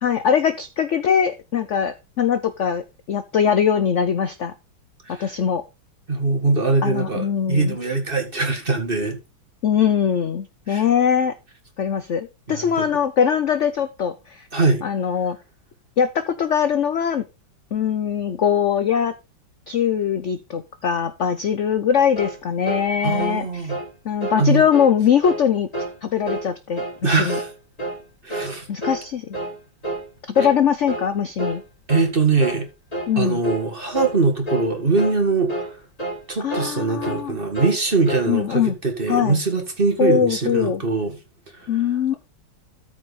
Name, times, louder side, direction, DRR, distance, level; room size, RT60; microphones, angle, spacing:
voice 1, 0.0-2.8 3.1-4.5 5.2-5.6 6.8-7.8 9.6-11.3 11.8-14.5 14.8-15.4 16.0-17.3 17.7-19.1 19.7-23.7 24.0-25.7 26.0-27.4 28.7-29.4 30.3-31.6 33.1-33.4 36.4-37.4 38.3-38.8 39.1-39.4 40.0-40.8 41.7-42.1, left 8 dB, 65° left, 0.7 m, -21 dB
voice 2, 6.1-9.2 10.7-10.8 12.5-12.9 14.5-14.8 23.0-23.8 24.4-24.6 27.0-27.5 28.2-28.7 31.9-32.7 33.2-35.7 36.3-41.2, right 3 dB, 30° right, 1.9 m, -22 dB
sound 1, 22.2-22.4 22.7-22.9 23.2-23.4 23.7-23.9 24.2-24.4 24.7-24.9 25.2-25.5 25.7-26.0 26.3-26.5 26.8-27.0 27.3-27.5 27.8-28.0 28.3-28.5 28.8-29.0 29.3-29.6 29.8-30.1 30.3-30.6 30.9-31.1 31.4-31.6 31.9-32.1 32.4-32.6 32.9-33.1 33.4-33.7 33.9-34.2 34.5-34.7 35.0-35.2 35.5-35.7 36.0-36.2 36.5-36.8 37.0-37.2 37.5-38.3, right 1 dB, 20° left, 3.7 m, -29 dB
13.5 x 4.8 x 4.1 m
omnidirectional pair, 2.2 m